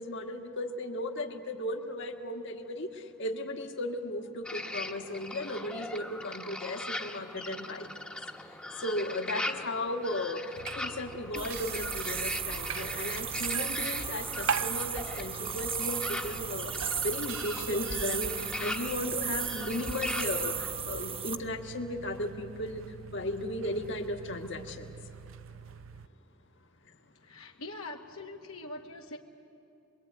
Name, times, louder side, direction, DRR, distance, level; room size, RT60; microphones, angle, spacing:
voice 1, 0.0-2.9 3.2-7.9 8.8-16.7 17.0-22.8 23.1-24.9, left 1 dB, 60° left, 4 dB, 1.6 m, -35 dB
sound 1, 4.4-20.7, left 1 dB, 5° left, 1.0 m, -40 dB
sound 2, 10.5-26.1, right 7 dB, 65° right, 0.5 m, -42 dB
sound 3, 11.4-21.4, right 7 dB, 25° right, 0.8 m, -35 dB
voice 2, 27.2-29.2, left 2 dB, 80° left, 0 dB, 1.3 m, -43 dB
25.0 x 22.0 x 9.2 m, 2.8 s
head